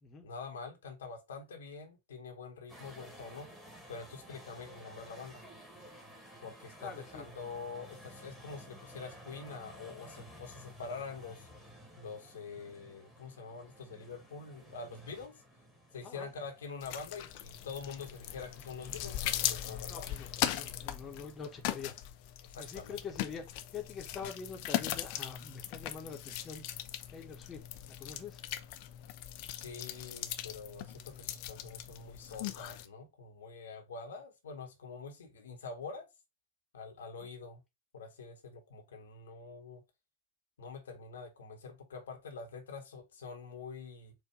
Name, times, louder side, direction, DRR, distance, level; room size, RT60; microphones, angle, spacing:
voice 1, 0.2-3.6 3.9-5.5 6.4-11.5 12.0-15.4 15.9-19.2 19.5-20.1 22.5-23.0 29.6-36.1 36.7-37.6 37.9-39.8 40.6-44.1, left 4 dB, 65° left, 1.1 m, -45 dB
sound 1, 2.7-21.8, equal, ahead, 1.5 m, -55 dB
voice 2, 6.8-7.3 16.0-16.3 19.9-21.9 22.6-26.6 27.1-28.4 37.2-37.3, left 6 dB, 25° left, 1.1 m, -45 dB
sound 2, 16.8-32.9, left 13 dB, 45° left, 0.5 m, -39 dB
4.6 x 2.5 x 4.5 m
figure-of-eight pair, 90°, 0 cm